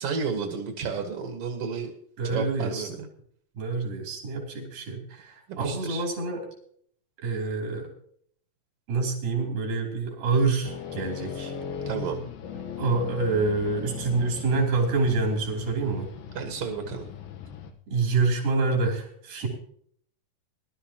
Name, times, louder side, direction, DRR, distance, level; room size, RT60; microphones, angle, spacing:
voice 1, 0.0-1.9 2.3-3.1 5.5-6.0 11.9-12.2 16.3-17.1, right 5 dB, 55° right, 4 dB, 1.9 m, -31 dB
voice 2, 2.2-2.9 3.5-6.5 7.2-7.9 8.9-11.5 12.8-16.1 17.9-19.5, right 3 dB, 90° right, 0 dB, 4.9 m, -27 dB
sound 1, 10.6-17.7, left 7 dB, 85° left, 2.9 m, -38 dB
20.5 x 12.0 x 2.9 m, 0.62 s
omnidirectional pair, 4.0 m